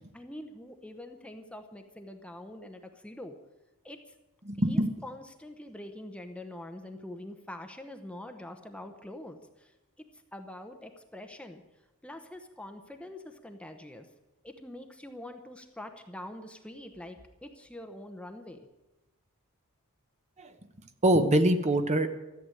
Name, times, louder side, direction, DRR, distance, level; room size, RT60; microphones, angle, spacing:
voice 1, 0.2-3.3 3.8-4.0 4.7-9.7 10.3-11.6 12.0-14.1 14.4-18.7, left 1 dB, 5° left, 6 dB, 0.9 m, -44 dB
voice 2, 4.4-4.9 20.4-20.5 21.0-22.1, right 1 dB, 30° right, 8 dB, 1.1 m, -24 dB
14.0 x 8.1 x 9.8 m, 1.0 s
head